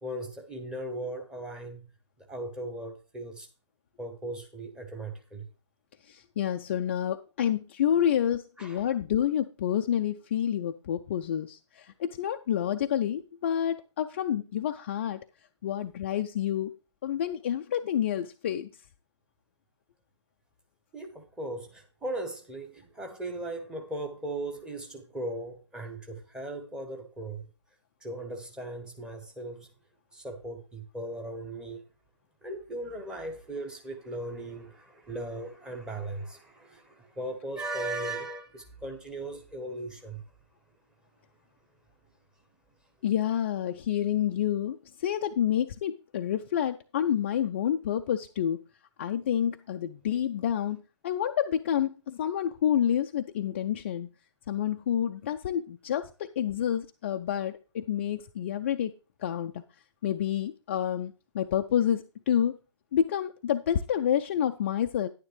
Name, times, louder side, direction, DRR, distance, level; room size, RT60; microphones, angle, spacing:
voice 1, 0.0-1.9 2.2-3.5 4.0-5.5 8.6-8.9 20.9-27.5 28.0-29.7 30.1-31.8 32.4-40.2, right 1 dB, 5° right, 1.0 m, -38 dB
voice 2, 6.0-15.3 15.6-16.7 17.0-18.7 43.0-48.6 49.0-54.1 54.5-58.9 59.2-59.6 60.0-62.6 62.9-65.1, left 10 dB, 25° left, 0.4 m, -28 dB
10.0 x 9.5 x 3.2 m
figure-of-eight pair, 140°, 15 cm